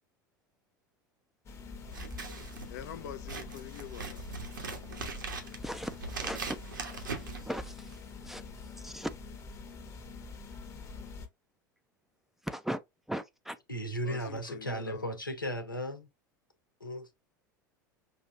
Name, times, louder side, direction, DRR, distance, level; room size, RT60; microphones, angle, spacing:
sound 1, 1.5-11.3, left 4 dB, 25° left, 1.0 m, -45 dB
Scissors, 1.8-8.1, right 5 dB, 75° right, 1.1 m, -41 dB
voice 1, 2.7-4.2 14.0-15.2, left 10 dB, 55° left, 0.5 m, -45 dB
voice 2, 5.6-8.0 8.2-9.1 12.4-12.8 13.1-13.6, equal, 5° right, 0.5 m, -39 dB
voice 3, 13.7-16.1 16.8-17.1, equal, 85° left, 1.0 m, -35 dB
5.8 x 2.8 x 2.5 m
figure-of-eight pair, 80°, 11 cm